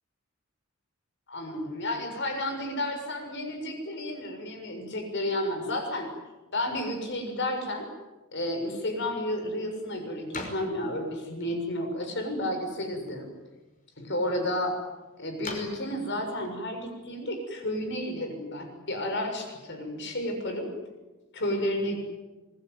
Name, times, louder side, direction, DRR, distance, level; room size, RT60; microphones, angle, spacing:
voice 1, 1.3-6.1 6.5-7.9 8.3-13.3 14.0-14.8 15.2-20.7 21.3-22.0, left 1 dB, 55° left, 5 dB, 6.9 m, -31 dB
sound 1, 8.7-17.8, left 2 dB, 35° left, 5.7 m, -47 dB
26.5 x 21.0 x 9.4 m, 1.1 s
head